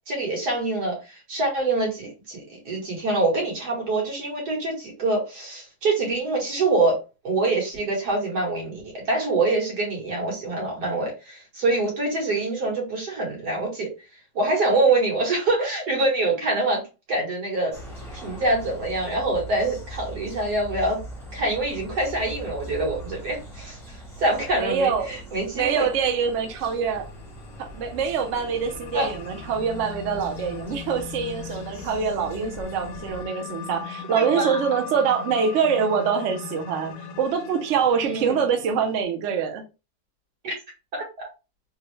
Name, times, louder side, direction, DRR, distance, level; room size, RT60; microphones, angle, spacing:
voice 1, 0.1-7.0 7.2-13.9 14.4-16.8 17.1-17.7 18.1-21.0 21.3-25.9 28.9-29.1 34.1-34.6 38.0-38.4 40.4-40.5 40.9-41.3, right 2 dB, 80° right, 2.0 m, -25 dB
sound 1, 17.7-33.3, right 1 dB, ahead, 0.7 m, -41 dB
voice 2, 24.5-25.1 25.5-27.1 27.6-39.6, right 6 dB, 60° right, 0.8 m, -25 dB
sound 2, 26.1-39.0, left 7 dB, 70° left, 0.9 m, -40 dB
3.7 x 2.1 x 3.0 m
omnidirectional pair, 1.7 m